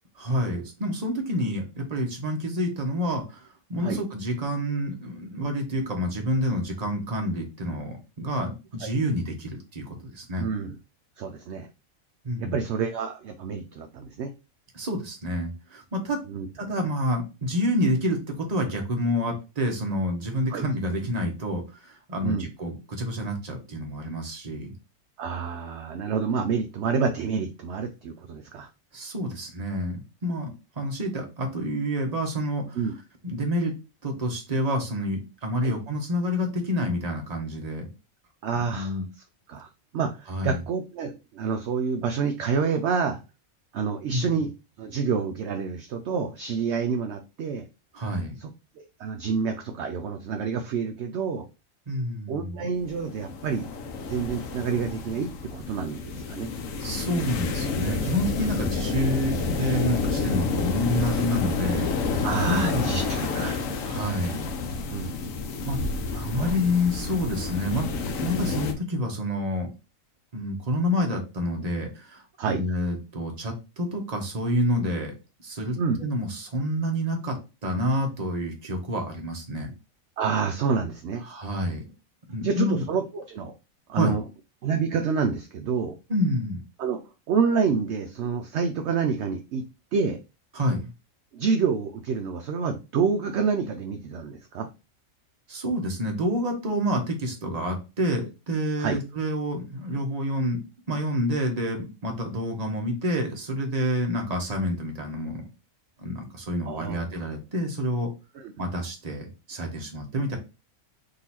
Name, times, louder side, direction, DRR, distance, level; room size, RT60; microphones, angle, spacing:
voice 1, 0.2-3.4 3.7-10.5 12.2-12.6 14.7-16.2 16.5-24.7 28.9-30.5 30.8-32.8 33.2-33.7 34.0-37.9 38.7-39.0 40.3-40.6 44.1-44.2 47.9-48.4 51.9-52.7 56.8-63.1 63.8-64.5 65.7-65.8 66.1-69.7 70.3-75.1 75.4-77.4 77.6-79.7 81.2-81.8 82.3-82.8 83.9-84.1 86.1-86.6 90.5-90.9 95.5-100.6 100.9-105.4 106.0-108.1 108.6-110.4, equal, 30° right, 2 dB, 1.0 m, -28 dB
voice 2, 10.4-10.8 11.2-11.7 12.4-14.3 16.3-16.5 20.5-20.7 22.2-22.5 25.2-28.7 32.8-33.0 35.6-35.8 38.4-39.0 39.5-39.7 39.9-43.2 43.7-44.5 44.8-47.6 48.4-48.5 48.8-51.4 52.3-53.7 54.0-56.5 58.5-58.7 62.2-63.6 64.9-65.2 66.1-66.5 72.4-72.6 75.8-76.0 80.2-81.2 82.4-83.5 83.9-84.2 84.6-86.0 86.8-87.0 87.3-89.6 89.9-90.2 91.3-94.7 98.8-99.0 106.7-107.1 108.4-108.5, right 5 dB, 65° right, 5 dB, 0.8 m, -28 dB
sound 1, 52.8-68.7, left 4 dB, 75° left, 1.0 m, -29 dB
4.0 x 2.7 x 4.2 m, 0.29 s
omnidirectional pair, 1.4 m